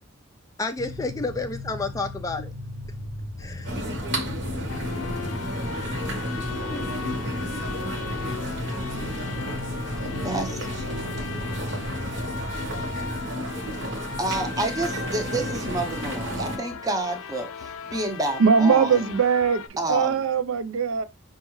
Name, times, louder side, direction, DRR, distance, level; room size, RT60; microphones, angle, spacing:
voice 1, 0.6-2.5 3.4-3.8 4.5-4.7 6.7-6.9 7.2-7.3 10.1-10.2 11.2-11.3, left 3 dB, 15° left, 0.3 m, -31 dB
sound 1, 0.8-13.2, left 1 dB, 90° right, 0.9 m, -36 dB
sound 2, 3.6-16.6, equal, 55° right, 1.0 m, -32 dB
sound 3, 4.7-19.7, left 6 dB, 90° left, 0.4 m, -38 dB
voice 2, 10.2-10.7 14.2-19.1 19.8-20.2, right 2 dB, 15° right, 0.6 m, -29 dB
voice 3, 18.4-19.6 19.9-21.0, right 6 dB, 70° right, 0.4 m, -20 dB
5.3 x 2.3 x 3.0 m
head